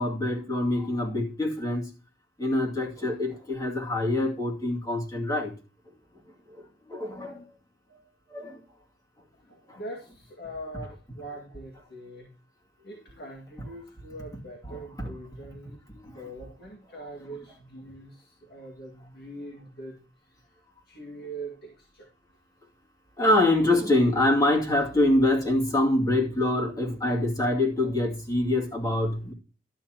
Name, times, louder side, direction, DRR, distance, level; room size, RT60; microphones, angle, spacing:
voice 1, 0.0-1.9 2.4-5.5 6.5-6.6 6.9-7.5 8.3-8.6 9.7-9.8 14.6-15.1 15.9-16.1 23.2-29.3, left 1 dB, 20° left, 2.5 m, -25 dB
voice 2, 9.5-12.3 12.8-15.8 16.1-20.0 20.5-20.6 20.9-22.1, right 1 dB, 65° left, 2.1 m, -42 dB
12.5 x 9.8 x 3.0 m
head